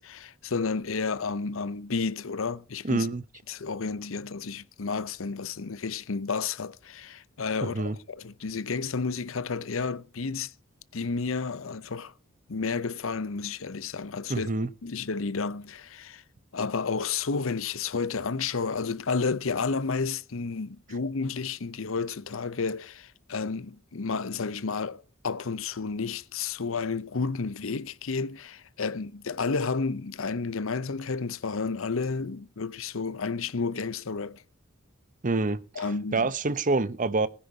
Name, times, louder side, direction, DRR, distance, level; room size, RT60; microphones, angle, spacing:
voice 1, 0.0-3.1 3.5-10.5 10.9-12.1 12.5-14.5 14.8-16.2 16.5-34.4 35.8-36.2, left 4 dB, 70° left, 0.8 m, -31 dB
voice 2, 2.8-3.2 7.6-8.0 14.3-14.7 35.2-37.3, right 3 dB, 40° right, 0.8 m, -27 dB
19.5 x 10.0 x 2.8 m
head